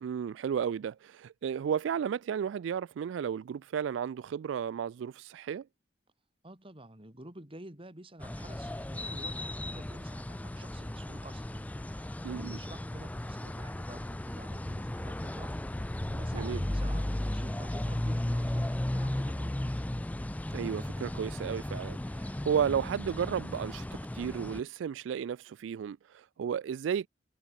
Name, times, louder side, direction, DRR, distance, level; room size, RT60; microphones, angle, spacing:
voice 1, 0.0-5.7 12.2-12.6 16.3-16.6 20.5-27.1, right 8 dB, 80° right, 0.3 m, -33 dB
voice 2, 6.4-11.6 11.9-19.8, right 1 dB, 30° right, 3.4 m, -50 dB
sound 1, 8.2-24.6, left 1 dB, 10° left, 0.4 m, -35 dB
head